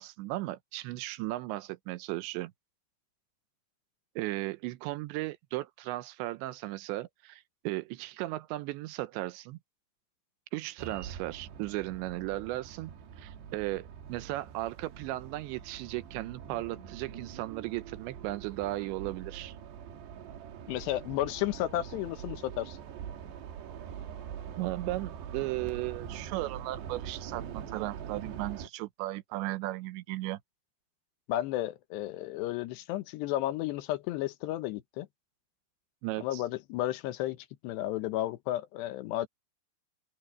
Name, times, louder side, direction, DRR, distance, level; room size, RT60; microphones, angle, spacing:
voice 1, 0.0-2.5 4.2-9.6 10.5-19.5 24.6-30.4 36.0-36.4, right 18 dB, 90° right, 3.1 m, -36 dB
sound 1, 10.8-28.7, right 8 dB, 70° right, 4.0 m, -44 dB
voice 2, 20.7-22.8 31.3-35.1 36.2-39.3, left 14 dB, 80° left, 3.0 m, -33 dB
open air
omnidirectional pair, 5.1 m